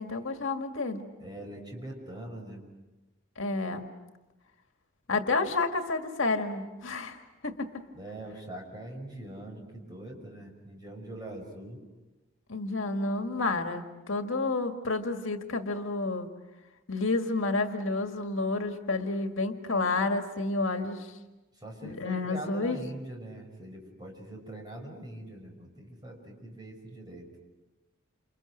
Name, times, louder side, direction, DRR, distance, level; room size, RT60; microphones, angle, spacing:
voice 1, 0.0-1.0 3.4-3.8 5.1-7.2 7.4-7.7 12.5-16.3 16.9-21.1 21.8-22.8, left 3 dB, 75° left, 5 dB, 2.0 m, -30 dB
voice 2, 1.2-2.6 7.9-11.8 21.6-27.3, right 1 dB, 20° right, 1 dB, 6.2 m, -43 dB
29.0 x 29.0 x 6.5 m, 1.1 s
head